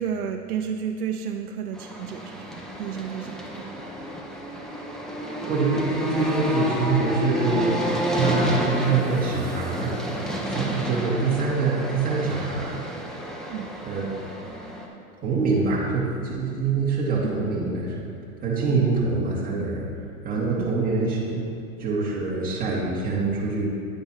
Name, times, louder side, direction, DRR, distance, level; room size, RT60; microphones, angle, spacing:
voice 1, 0.0-3.7 13.5-13.7 17.2-17.3 18.7-18.9 20.5-20.8, right 8 dB, 90° right, 4 dB, 0.7 m, -32 dB
sound 1, 1.7-14.9, equal, ahead, 0.5 m, -29 dB
voice 2, 5.5-7.8 8.1-9.9 10.4-12.8 13.1-13.3 13.8-14.1 15.2-18.1 18.4-19.9 20.2-21.5 21.8-23.7, right 4 dB, 20° right, -5 dB, 1.9 m, -25 dB
9.3 x 8.7 x 2.9 m, 2.4 s
hypercardioid pair, 125°, 44 cm